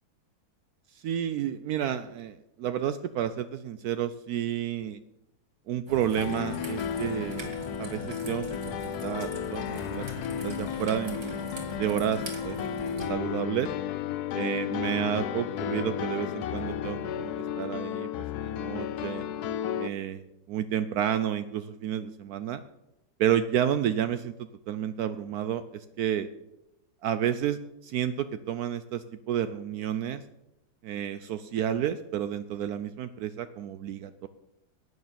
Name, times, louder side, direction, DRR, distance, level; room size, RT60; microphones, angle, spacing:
voice 1, 0.9-5.0 5.7-8.7 9.0-10.1 10.4-11.3 11.8-12.6 13.1-13.7 14.3-17.3 17.6-19.2 19.8-20.2 20.5-22.6 23.2-24.3 24.7-26.3 27.0-30.2 30.8-34.3, right 10 dB, 80° right, 11 dB, 0.8 m, -30 dB
Raindrop / Trickle dribble, 5.9-13.1, right 1 dB, 35° right, 2.3 m, -41 dB
Piano, 6.2-19.9, left 9 dB, 75° left, 0.9 m, -33 dB
11.0 x 9.3 x 7.6 m, 0.89 s
omnidirectional pair, 2.2 m